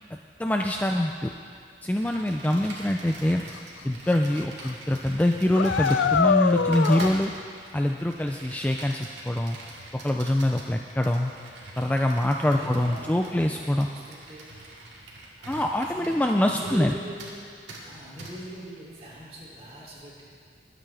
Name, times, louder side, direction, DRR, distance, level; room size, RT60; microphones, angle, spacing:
voice 1, 0.4-1.3 1.8-3.4 3.8-7.3 7.7-9.6 10.0-11.3 11.8-13.9 15.5-16.9, left 1 dB, 10° left, 2 dB, 0.3 m, -24 dB
Computer keyboard, 1.9-16.9 17.2-17.4 17.7-17.8 18.2-18.3, right 2 dB, 80° right, 2.2 m, -44 dB
voice 2, 2.4-2.7 12.4-14.5 15.4-17.4 17.8-20.2, equal, 35° right, -6 dB, 2.8 m, -42 dB
sound 1, 3.5-3.6 4.1-4.4 4.6-4.7 5.5-7.1, left 6 dB, 85° left, 0.4 m, -23 dB
21.0 x 9.0 x 3.4 m, 2.2 s
head